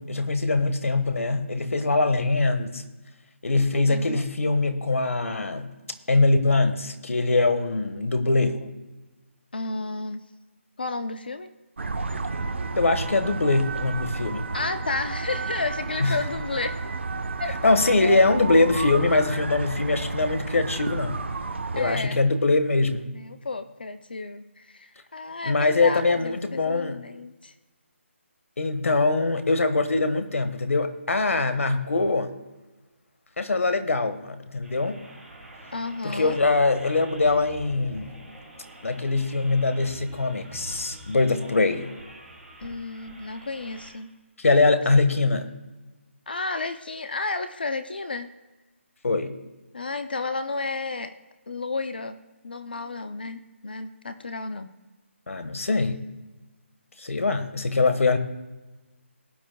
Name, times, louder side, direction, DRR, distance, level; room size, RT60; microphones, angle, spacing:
voice 1, 0.0-2.8 3.4-5.7 6.1-8.6 12.8-14.5 16.0-16.2 17.6-21.2 21.7-23.1 25.4-27.0 28.6-32.3 33.4-35.0 36.0-38.2 38.8-41.9 44.4-45.5 49.0-49.3 55.3-56.0 57.0-58.2, left 3 dB, 90° left, 10 dB, 1.4 m, -23 dB
voice 2, 3.9-4.2 6.5-6.6 9.5-10.2 10.8-11.5 14.5-16.8 17.4-17.5 21.7-22.2 23.1-27.5 35.7-36.4 41.4-41.5 42.6-44.1 46.3-48.3 49.7-51.1 51.5-52.2 52.4-54.7, left 3 dB, 45° left, 10 dB, 0.5 m, -32 dB
sound 1, 11.8-22.0, right 3 dB, 60° right, 1.0 m, -31 dB
sound 2, 34.6-43.9, right 1 dB, 5° left, 1.4 m, -45 dB
19.5 x 9.2 x 2.3 m, 1.2 s
hypercardioid pair, 180°, 7 cm